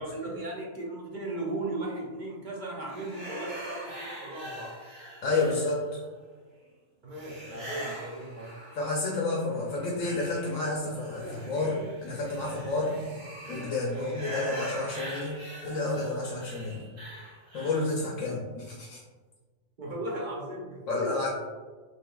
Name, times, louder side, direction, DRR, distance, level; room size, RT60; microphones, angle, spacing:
voice 1, 0.0-4.8 7.0-8.5 13.9-14.1 19.8-21.1, right 2 dB, 50° right, -3 dB, 0.6 m, -37 dB
sound 1, 2.9-6.0 7.1-9.1 9.5-18.0, equal, 80° right, 1.5 m, -41 dB
voice 2, 5.2-6.0 8.8-12.9 13.5-15.4 15.6-16.8 17.5-19.0 20.9-21.3, left 2 dB, 75° left, -3 dB, 1.0 m, -30 dB
4.9 x 3.0 x 2.3 m, 1.4 s
omnidirectional pair, 1.3 m